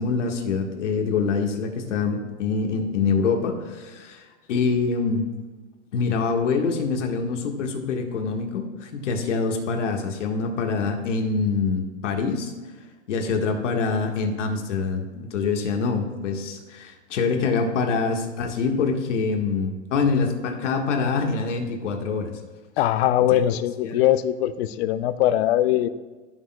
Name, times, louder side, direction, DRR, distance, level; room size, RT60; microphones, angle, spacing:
voice 1, 0.0-5.3 5.9-12.5 13.1-22.4 23.8-24.0, left 4 dB, 80° left, 3 dB, 1.6 m, -25 dB
voice 2, 22.8-25.9, left 12 dB, 60° left, 14 dB, 0.6 m, -21 dB
15.0 x 6.4 x 2.3 m, 1.3 s
hypercardioid pair, 130°, 36 cm